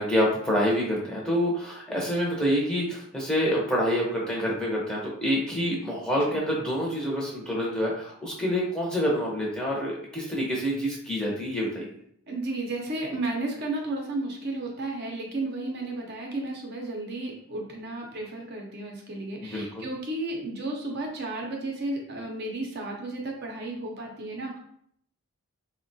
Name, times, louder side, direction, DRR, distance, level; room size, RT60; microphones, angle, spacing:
voice 1, 0.0-11.9 19.4-19.8, equal, 5° left, -5 dB, 0.6 m, -27 dB
voice 2, 12.3-24.6, right 2 dB, 50° right, 0 dB, 0.5 m, -33 dB
3.6 x 2.1 x 2.6 m, 0.68 s
head